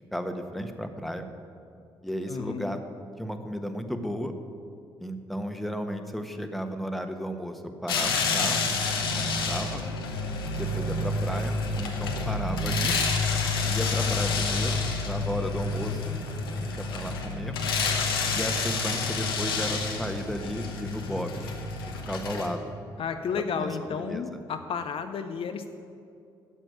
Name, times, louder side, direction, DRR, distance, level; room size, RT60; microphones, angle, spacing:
voice 1, 0.1-1.3 2.0-2.8 3.2-4.3 5.0-8.8 9.1-9.8 10.5-12.9 13.6-16.2 16.5-17.6 18.3-21.5 22.1-22.7 23.5-24.2, equal, ahead, 6 dB, 1.3 m, -34 dB
voice 2, 2.3-2.8 23.0-25.7, left 6 dB, 50° left, 7 dB, 0.6 m, -32 dB
sound 1, 7.9-22.5, left 3 dB, 85° left, 1.0 m, -28 dB
9.3 x 7.7 x 9.2 m, 2.5 s
figure-of-eight pair, 40°, 12 cm